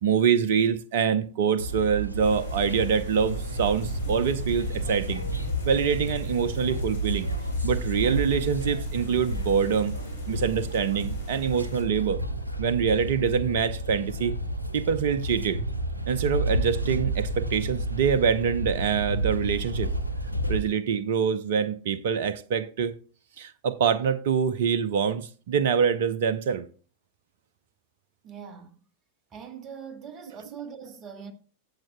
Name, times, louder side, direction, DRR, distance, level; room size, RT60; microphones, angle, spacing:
voice 1, 0.0-5.2 5.6-7.3 7.6-9.9 10.3-12.2 12.6-14.4 14.7-15.6 16.1-19.9 20.5-23.0 23.4-26.7, right 7 dB, 55° right, 0.6 m, -25 dB
sound 1, 1.6-20.6, right 1 dB, 85° right, 0.9 m, -31 dB
sound 2, 2.2-11.8, equal, 70° left, 4.1 m, -39 dB
voice 2, 28.2-28.8 29.3-31.3, right 7 dB, 30° right, 1.2 m, -41 dB
15.0 x 7.4 x 2.2 m
figure-of-eight pair, 90°, 0 cm